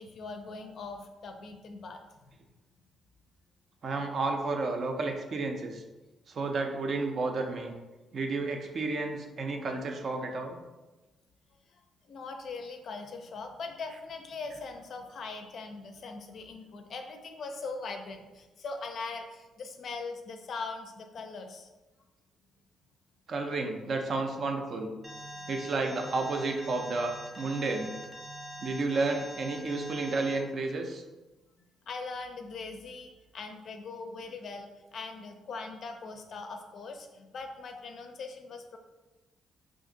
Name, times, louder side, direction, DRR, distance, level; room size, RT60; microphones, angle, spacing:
voice 1, 0.0-2.0 6.4-6.5 12.1-21.7 25.4-25.5 31.9-38.8, left 4 dB, 60° left, 5 dB, 0.4 m, -41 dB
voice 2, 3.8-5.8 6.3-7.7 8.1-10.6 23.3-24.9 25.5-27.9 28.6-31.0, right 3 dB, 50° right, 4 dB, 0.5 m, -31 dB
Alarm, 25.0-30.4, equal, 5° right, 0.6 m, -43 dB
2.5 x 2.5 x 3.8 m, 1.1 s
cardioid pair, 90°, 0 cm